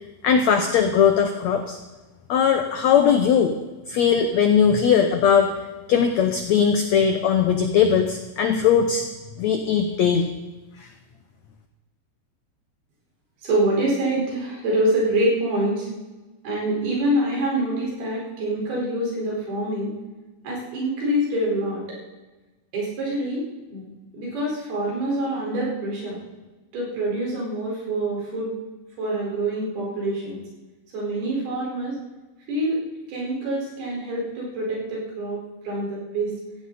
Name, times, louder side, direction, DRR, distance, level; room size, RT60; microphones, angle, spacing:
voice 1, 0.2-1.8 2.3-3.6 3.9-5.5 5.9-9.0 9.4-10.3, left 7 dB, 85° left, 6 dB, 1.5 m, -19 dB
voice 2, 13.4-15.9 16.4-19.9 20.4-21.8 22.7-23.8 24.1-26.2 26.7-28.5 29.0-30.4 30.9-31.9 32.5-32.8 33.1-35.4 35.6-36.3, right 1 dB, 80° right, -4 dB, 6.7 m, -25 dB
17.0 x 15.5 x 4.2 m, 1.2 s
omnidirectional pair, 4.4 m